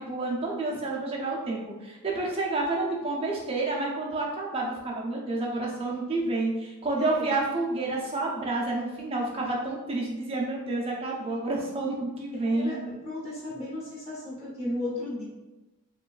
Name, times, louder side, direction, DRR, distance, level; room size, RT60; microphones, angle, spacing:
voice 1, 0.0-12.7, right 2 dB, 25° right, -2 dB, 0.4 m, -29 dB
voice 2, 7.0-7.3 12.3-15.2, left 1 dB, 25° left, -8 dB, 0.8 m, -35 dB
3.0 x 2.2 x 2.3 m, 1.1 s
head